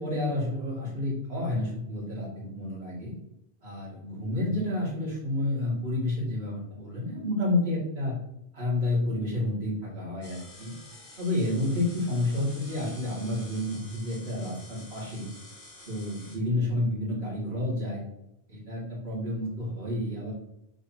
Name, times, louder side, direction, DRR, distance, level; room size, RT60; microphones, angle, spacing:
voice 1, 0.0-3.1 3.6-8.1 8.5-10.7 11.2-15.3 15.9-18.0 18.5-20.3, left 1 dB, 60° right, -6 dB, 2.9 m, -30 dB
sound 1, 10.2-16.4, left 1 dB, 30° left, 1.4 m, -49 dB
6.5 x 4.9 x 2.9 m, 0.82 s
omnidirectional pair, 1.1 m